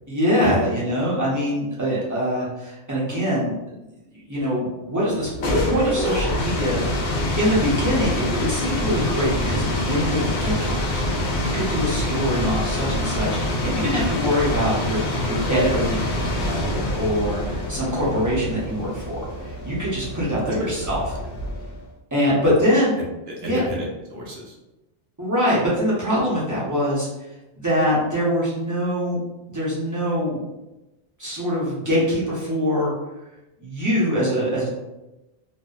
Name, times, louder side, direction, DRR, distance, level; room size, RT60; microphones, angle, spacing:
voice 1, 0.1-3.5 4.1-5.3 5.6-21.0 22.1-23.0 23.4-23.6 25.2-27.1 27.6-29.2 29.5-30.4 31.2-32.9 33.6-34.7, equal, 20° right, -8 dB, 0.6 m, -24 dB
sound 1, 5.1-21.8, left 1 dB, 85° left, 0.9 m, -26 dB
voice 2, 23.0-24.6, equal, 65° right, -2 dB, 0.8 m, -31 dB
2.6 x 2.1 x 2.3 m, 0.99 s
omnidirectional pair, 1.2 m